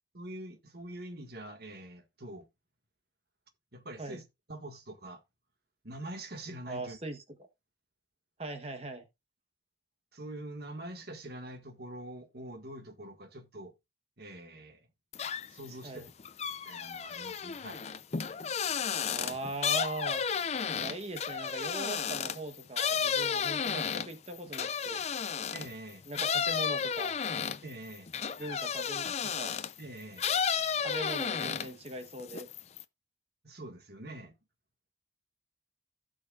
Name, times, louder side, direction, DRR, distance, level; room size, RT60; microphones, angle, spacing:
voice 1, 0.1-2.5 3.7-4.2 4.5-5.2 5.8-7.0 10.1-13.7 14.2-14.9 15.5-16.1 16.7-17.8 25.5-26.0 27.6-28.1 28.4-28.7 29.3-29.5 29.8-30.2 30.7-31.1 33.4-34.4, right 1 dB, 55° right, 1.7 m, -45 dB
voice 2, 6.7-7.2 8.4-9.1 15.8-16.1 19.1-20.2 20.8-25.0 26.1-27.2 28.4-29.6 30.8-32.5, right 2 dB, 30° right, 1.0 m, -40 dB
sound 1, 15.1-15.7 16.0-25.7 26.1-29.8 30.2-31.9 32.2-32.8, left 7 dB, 35° left, 0.5 m, -32 dB
15.5 x 6.3 x 2.4 m
head